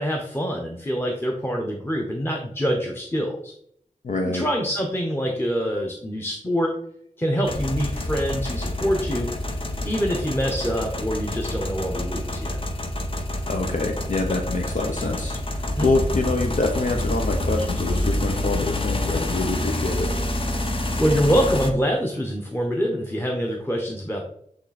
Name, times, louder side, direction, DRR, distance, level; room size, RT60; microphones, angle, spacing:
voice 1, 0.0-3.5 4.3-6.7 7.2-9.3 9.8-12.6 15.8-15.9 21.0-24.3, equal, 15° left, 1 dB, 1.0 m, -25 dB
voice 2, 4.0-4.4 13.5-20.1, left 2 dB, 65° left, 2 dB, 0.9 m, -26 dB
sound 1, 7.4-21.7, left 1 dB, 40° left, 1.1 m, -27 dB
8.9 x 3.2 x 4.2 m, 0.68 s
wide cardioid pair, 85°, 14 cm